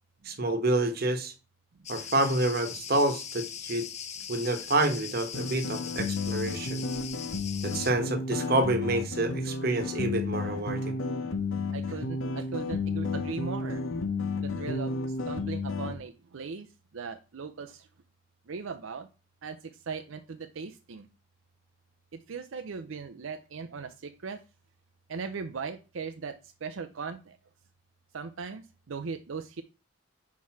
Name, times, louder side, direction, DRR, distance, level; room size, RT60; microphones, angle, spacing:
voice 1, 0.2-1.3 1.9-3.9 4.3-6.8 7.6-11.0, right 2 dB, 45° right, 1.1 m, -28 dB
Cricket, 1.8-7.9, left 8 dB, 35° left, 0.5 m, -40 dB
sound 1, 5.3-15.9, left 3 dB, 75° left, 0.9 m, -32 dB
voice 2, 11.7-13.8 14.4-16.7 16.9-17.9 18.5-19.1 19.4-21.1 22.1-24.4 25.1-27.4 28.1-29.6, right 5 dB, 75° right, 0.5 m, -39 dB
4.7 x 4.6 x 5.7 m
head